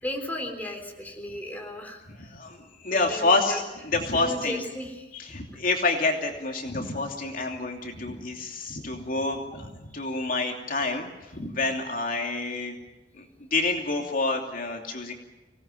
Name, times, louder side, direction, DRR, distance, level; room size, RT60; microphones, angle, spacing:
voice 1, 0.0-2.1 2.9-3.6 4.1-5.1 9.9-10.0, left 1 dB, 10° left, 2 dB, 3.7 m, -35 dB
voice 2, 2.3-4.6 5.1-12.8 13.2-13.3 13.5-15.1, left 3 dB, 50° left, 2 dB, 2.9 m, -28 dB
25.5 x 18.5 x 9.1 m, 1.0 s
head